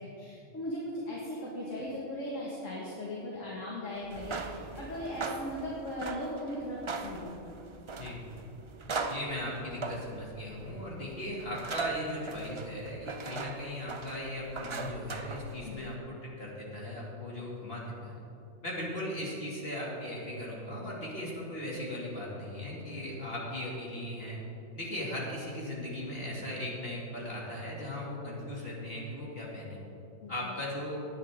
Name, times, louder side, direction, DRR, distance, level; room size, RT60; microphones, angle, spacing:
voice 1, 0.0-7.4 15.6-16.0 30.2-30.5, left 1 dB, 75° left, -5 dB, 2.2 m, -38 dB
sound 1, 4.0-15.9, right 4 dB, 40° right, 0.4 m, -40 dB
voice 2, 9.1-18.2 18.6-24.4 24.7-29.8 30.3-31.0, left 1 dB, 50° left, -5 dB, 2.7 m, -38 dB
17.5 x 11.0 x 3.7 m, 2.9 s
omnidirectional pair, 1.3 m